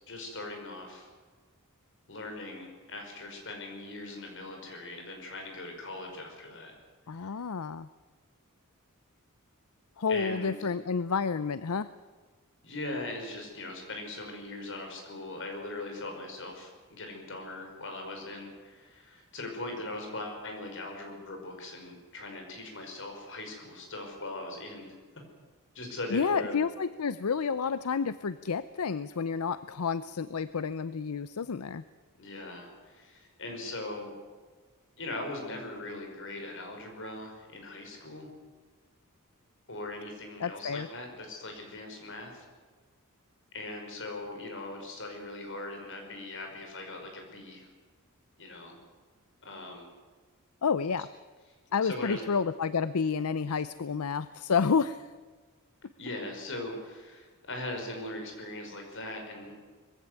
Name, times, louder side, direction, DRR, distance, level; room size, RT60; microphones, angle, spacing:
voice 1, 0.1-1.1 2.1-6.7 7.1-7.3 10.1-10.6 12.6-25.0 25.7-26.6 32.2-34.1 35.0-38.3 39.7-42.4 43.5-47.7 48.4-48.8 49.4-49.9 51.8-52.2 56.0-59.6, left 2 dB, 60° left, 3 dB, 5.4 m, -40 dB
voice 2, 7.1-7.9 10.0-11.9 26.1-31.8 40.4-40.9 50.6-51.1 51.7-55.1, left 5 dB, 80° left, 15 dB, 0.6 m, -30 dB
21.0 x 16.0 x 9.5 m, 1.4 s
head